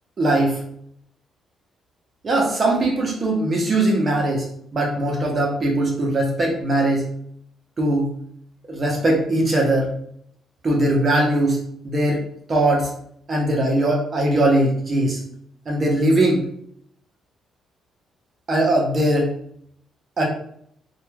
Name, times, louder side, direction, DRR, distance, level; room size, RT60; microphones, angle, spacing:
voice 1, 0.2-0.6 2.2-7.0 7.8-8.1 8.7-9.9 10.6-12.2 12.5-12.9 13.3-15.2 15.7-16.5 18.5-19.3 20.2-20.3, right 1 dB, 40° right, -1 dB, 0.7 m, -20 dB
2.9 x 2.3 x 2.2 m, 0.66 s
cardioid pair, 90°, 0 cm